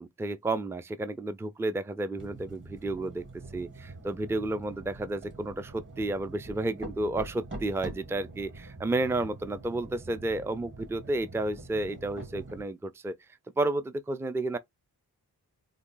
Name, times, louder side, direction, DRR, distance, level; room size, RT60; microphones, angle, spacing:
voice 1, 0.0-3.2 3.5-13.1 13.6-14.6, right 2 dB, 5° right, 0.4 m, -31 dB
sound 1, 2.2-12.6, right 2 dB, 30° right, 1.4 m, -45 dB
3.6 x 2.2 x 3.8 m
cardioid pair, 55°, 39 cm